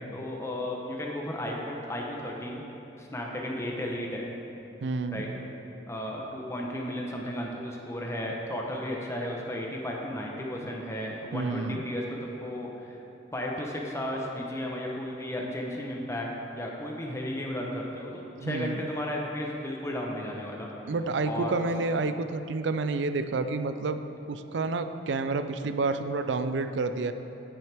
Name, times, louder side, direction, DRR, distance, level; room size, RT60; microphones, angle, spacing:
voice 1, 0.1-2.6 3.0-4.3 5.1-5.3 5.9-13.0 13.3-16.3 16.5-20.7 21.2-21.6, left 1 dB, 15° left, -1 dB, 0.8 m, -34 dB
voice 2, 4.8-5.3 11.3-11.8 18.4-18.8 20.9-24.0 24.3-27.1, right 3 dB, 70° right, 10 dB, 0.4 m, -29 dB
9.2 x 8.7 x 3.4 m, 2.9 s
head